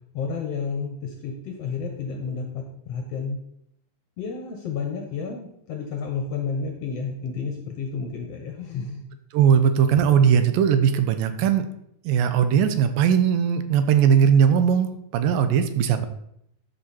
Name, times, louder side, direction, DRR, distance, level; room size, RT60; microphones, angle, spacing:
voice 1, 0.1-3.4 4.2-9.0, left 5 dB, 60° left, 2 dB, 1.7 m, -31 dB
voice 2, 9.3-11.7 12.0-16.1, right 8 dB, 85° right, 9 dB, 2.4 m, -19 dB
12.5 x 5.4 x 4.3 m, 0.74 s
omnidirectional pair, 4.0 m